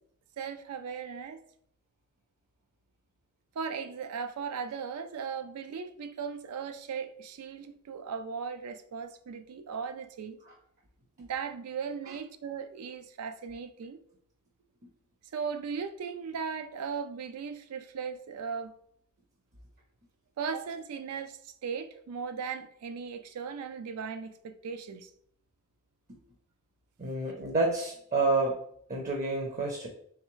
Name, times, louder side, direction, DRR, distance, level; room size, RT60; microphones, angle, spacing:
voice 1, 0.4-1.4 3.6-10.4 11.2-14.0 15.3-18.7 20.4-25.1, right 6 dB, 90° right, 0.4 m, -37 dB
voice 2, 27.0-28.6 28.9-29.9, right 3 dB, 35° right, 0.5 m, -29 dB
3.5 x 3.2 x 3.0 m
head